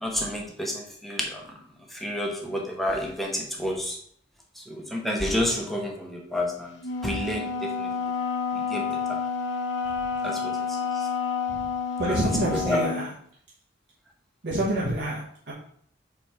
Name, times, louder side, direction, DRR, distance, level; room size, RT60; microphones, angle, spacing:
voice 1, 0.0-1.4 1.9-4.0 4.6-6.7 7.0-7.9 8.7-9.2 10.2-11.0 12.1-12.2 12.5-12.8, left 1 dB, ahead, -1 dB, 1.1 m, -30 dB
Wind instrument woodwind instrument, 6.8-13.1, left 5 dB, 80° left, 0.8 m, -29 dB
voice 2, 12.0-13.1 14.4-15.5, right 1 dB, 60° right, -6 dB, 1.3 m, -27 dB
4.6 x 4.0 x 5.7 m, 0.62 s
head